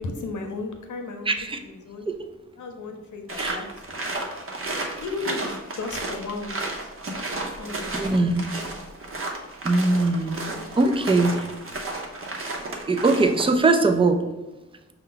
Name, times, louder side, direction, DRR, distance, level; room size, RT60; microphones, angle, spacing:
voice 1, 0.0-1.3 1.6-2.1 2.6-4.0 5.0-6.9 7.3-8.1 10.3-10.6, left 3 dB, 80° left, 4 dB, 0.7 m, -35 dB
voice 2, 1.3-1.6 2.1-2.2 3.4-3.6 4.5-4.6 7.8-8.5 9.6-10.5 10.8-11.5 12.4-12.5 12.8-14.2, right 3 dB, 20° right, 5 dB, 0.4 m, -21 dB
sound 1, 3.3-13.6, right 2 dB, 45° right, 0.8 m, -33 dB
5.4 x 2.2 x 3.8 m, 1.1 s
cardioid pair, 70°, 30 cm